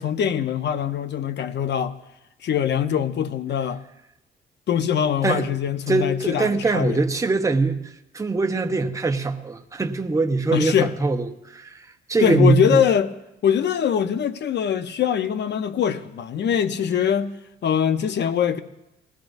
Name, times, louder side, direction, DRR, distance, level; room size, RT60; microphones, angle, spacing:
voice 1, 0.0-2.0 2.4-3.8 4.7-7.0 10.5-10.9 12.2-13.1 13.4-17.3 17.6-18.6, left 8 dB, 60° left, 0.8 m, -22 dB
voice 2, 5.9-12.8, right 3 dB, 15° right, 0.9 m, -22 dB
19.5 x 15.5 x 2.7 m
cardioid pair, 95°, 20 cm